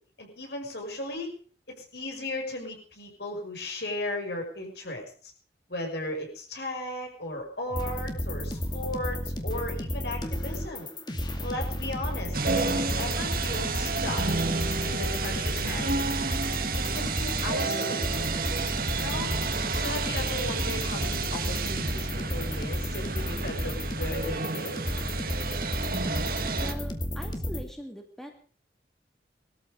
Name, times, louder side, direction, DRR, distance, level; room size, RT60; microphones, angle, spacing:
voice 1, 0.2-1.3 1.7-5.3 5.7-10.9 11.4-14.3 14.8-16.0 16.8-18.3 18.9-19.3 19.8-24.8, left 1 dB, 70° left, 2 dB, 6.1 m, -36 dB
sound 1, 7.7-27.6, equal, 25° left, 2.2 m, -32 dB
sound 2, 12.3-26.7, right 4 dB, 55° right, 1.6 m, -31 dB
voice 2, 26.6-28.3, equal, ahead, 3 dB, 2.3 m, -41 dB
20.5 x 13.5 x 5.1 m, 0.44 s
head